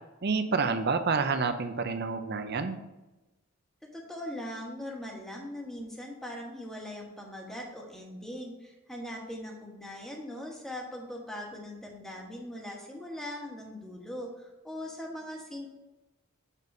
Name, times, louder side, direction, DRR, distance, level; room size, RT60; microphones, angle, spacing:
voice 1, 0.2-2.8, right 4 dB, 50° right, 9 dB, 0.6 m, -28 dB
voice 2, 3.9-15.7, left 1 dB, ahead, -1 dB, 1.3 m, -40 dB
7.3 x 4.1 x 5.4 m, 1.0 s
head